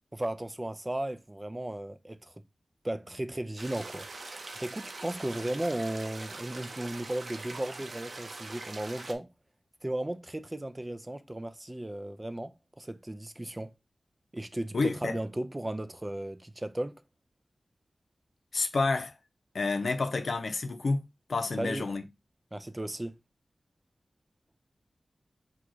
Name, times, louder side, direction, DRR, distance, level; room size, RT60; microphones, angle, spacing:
voice 1, 0.1-2.3 2.8-4.1 4.3-9.3 9.8-13.7 14.3-17.0 21.6-21.9 22.5-23.1, right 1 dB, 20° right, 0.4 m, -35 dB
sound 1, 3.6-9.1, right 3 dB, 65° right, 0.7 m, -43 dB
voice 2, 14.7-15.2 18.5-19.1 19.5-21.0 21.3-22.0, left 3 dB, 70° left, 0.7 m, -29 dB
4.6 x 2.4 x 3.8 m
wide cardioid pair, 80°, 0 cm